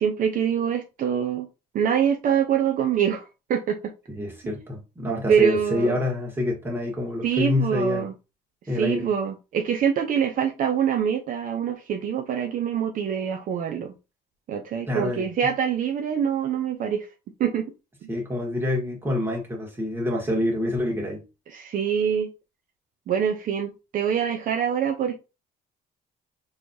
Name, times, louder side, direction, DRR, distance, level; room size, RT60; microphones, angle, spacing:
voice 1, 0.0-1.5 1.7-3.2 3.5-3.9 5.3-6.0 7.2-8.1 8.7-13.9 14.5-17.1 17.4-17.7 18.0-18.1 21.5-22.3 23.1-25.1, right 8 dB, 55° right, 0.6 m, -24 dB
voice 2, 4.1-8.1 8.7-9.1 14.9-15.3 18.1-21.2, left 1 dB, 15° right, 1.7 m, -27 dB
4.5 x 3.1 x 2.7 m
cardioid pair, 110°, 17 cm